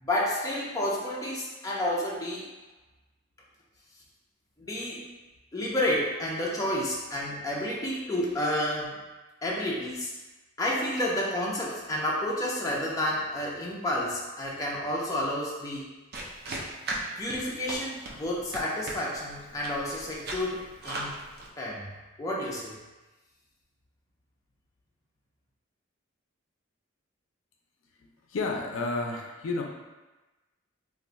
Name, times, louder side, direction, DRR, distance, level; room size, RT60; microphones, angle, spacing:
voice 1, 0.0-2.5 4.6-5.0 5.5-9.0 9.4-10.1 10.6-15.9 17.2-21.2 21.6-22.7, left 1 dB, 15° left, -5 dB, 0.5 m, -30 dB
sound 1, 16.1-21.5, right 2 dB, 50° right, 0.5 m, -38 dB
voice 2, 28.3-29.6, left 3 dB, 75° left, 1 dB, 0.4 m, -30 dB
2.5 x 2.2 x 3.9 m, 1.1 s
head